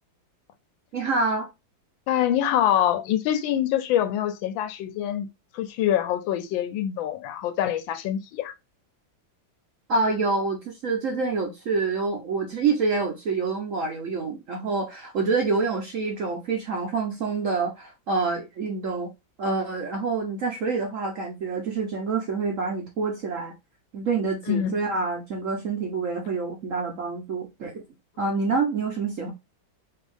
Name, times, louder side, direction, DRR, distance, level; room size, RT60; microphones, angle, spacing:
voice 1, 0.9-1.5 9.9-19.1 19.4-23.5 23.9-27.8 28.2-29.3, right 4 dB, 60° right, 0.8 m, -27 dB
voice 2, 2.1-5.3 5.5-8.5 24.5-24.8, left 11 dB, 85° left, 1.3 m, -25 dB
4.5 x 2.4 x 3.3 m
omnidirectional pair, 2.1 m